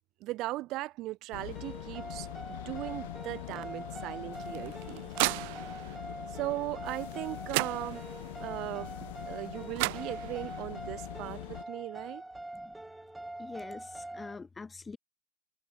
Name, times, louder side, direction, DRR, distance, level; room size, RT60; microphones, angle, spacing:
voice 1, 0.2-5.1 6.3-8.0 8.4-8.9 9.3-12.2, right 18 dB, 50° right, 2.3 m, -38 dB
sound 1, 1.3-11.6, left 19 dB, 75° left, 4.9 m, -43 dB
sound 2, 1.5-14.4, right 1 dB, 5° right, 2.7 m, -44 dB
sound 3, 4.3-6.0 7.1-7.2 7.5-8.3 9.4-9.5 9.8-10.6, right 29 dB, 70° right, 1.1 m, -34 dB
voice 2, 13.4-15.0, left 4 dB, 15° left, 3.0 m, -44 dB
supercardioid pair, 120°, 0 cm